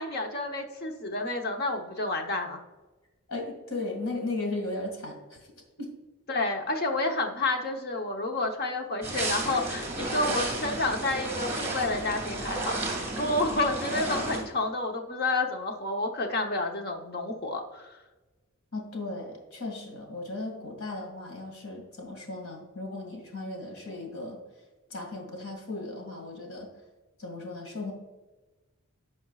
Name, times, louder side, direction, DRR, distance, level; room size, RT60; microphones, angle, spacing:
voice 1, 0.0-2.6 6.3-12.7 13.2-17.9, left 2 dB, 45° left, 3 dB, 1.0 m, -30 dB
voice 2, 3.3-5.4 5.8-5.9 18.7-24.4 24.9-26.7 27.2-27.9, left 2 dB, 80° left, 1 dB, 2.2 m, -36 dB
sound 1, 9.0-14.4, right 2 dB, 10° right, 1.9 m, -32 dB
15.5 x 5.3 x 2.4 m, 1.2 s
head